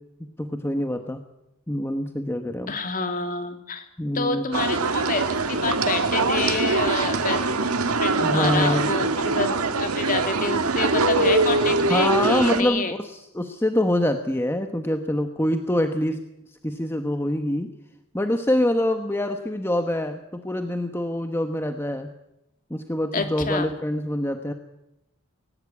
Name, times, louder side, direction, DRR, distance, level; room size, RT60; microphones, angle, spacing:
voice 1, 0.2-1.2 1.7-2.7 4.0-4.4 8.2-8.9 11.6-16.2 16.6-17.7 18.1-22.1 22.7-24.5, left 1 dB, 10° left, 6 dB, 1.1 m, -25 dB
voice 2, 2.7-3.8 4.1-7.4 7.8-12.9 23.1-23.7, left 3 dB, 40° left, 6 dB, 2.9 m, -28 dB
sound 1, 4.5-12.6, right 3 dB, 80° right, 1.7 m, -23 dB
20.0 x 19.5 x 8.6 m, 0.88 s
head